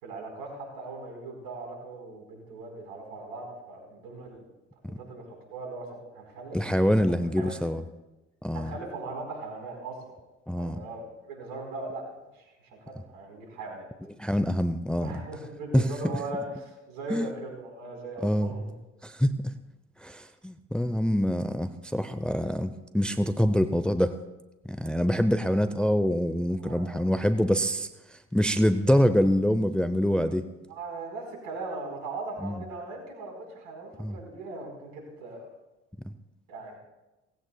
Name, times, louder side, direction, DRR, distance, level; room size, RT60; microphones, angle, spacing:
voice 1, 0.0-4.4 5.0-6.6 6.8-7.6 8.5-10.2 10.5-12.1 12.3-13.9 15.0-18.7 26.6-26.9 30.7-35.5 36.5-36.8, right 3 dB, 70° right, 1 dB, 4.4 m, -39 dB
voice 2, 6.5-7.8 8.4-8.7 10.5-10.8 14.2-15.1 15.7-15.8 17.1-17.3 18.2-18.5 19.0-19.3 20.0-24.2 24.6-27.9 28.3-30.4 32.4-32.6 34.0-34.2, equal, 5° left, 10 dB, 0.6 m, -25 dB
17.5 x 15.0 x 2.3 m, 1.0 s
hypercardioid pair, 60°, 36 cm